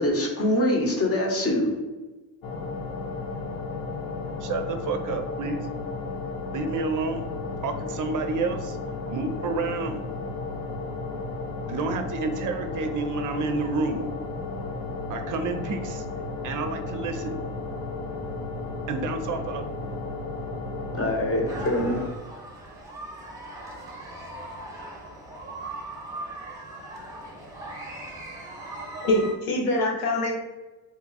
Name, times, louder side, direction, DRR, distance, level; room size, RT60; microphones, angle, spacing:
voice 1, 0.0-1.8 20.9-22.1, left 1 dB, 30° left, 1.0 m, -24 dB
sound 1, 2.4-22.1, left 3 dB, 55° left, 0.7 m, -34 dB
voice 2, 4.4-5.6 6.5-7.2 7.6-8.8 9.1-10.0 11.7-14.1 15.1-16.0 16.4-17.4 18.9-20.1, right 4 dB, 45° right, 0.5 m, -29 dB
sound 2, 21.5-29.3, right 2 dB, 10° right, 0.9 m, -39 dB
voice 3, 29.0-30.3, left 1 dB, 90° left, 1.0 m, -24 dB
2.9 x 2.3 x 3.9 m
supercardioid pair, 85°, 44 cm